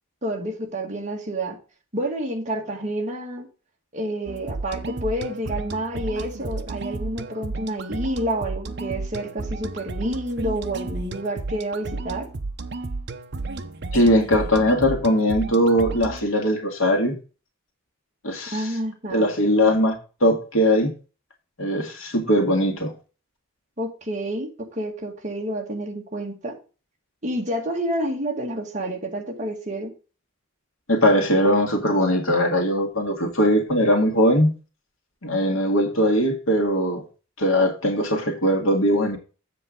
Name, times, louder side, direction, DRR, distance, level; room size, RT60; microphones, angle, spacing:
voice 1, 0.2-1.6 1.9-3.5 3.9-12.3 18.5-19.3 23.8-26.6 27.2-29.9, right 1 dB, 35° right, 0 dB, 2.0 m, -29 dB
sound 1, 4.3-16.2, right 3 dB, 55° right, 0.8 m, -33 dB
voice 2, 13.9-17.1 18.2-18.7 19.1-20.0 20.2-20.9 21.6-22.9 30.9-34.6 35.2-37.0 37.4-39.2, equal, 80° left, 3 dB, 1.9 m, -20 dB
7.8 x 7.7 x 3.8 m, 0.35 s
head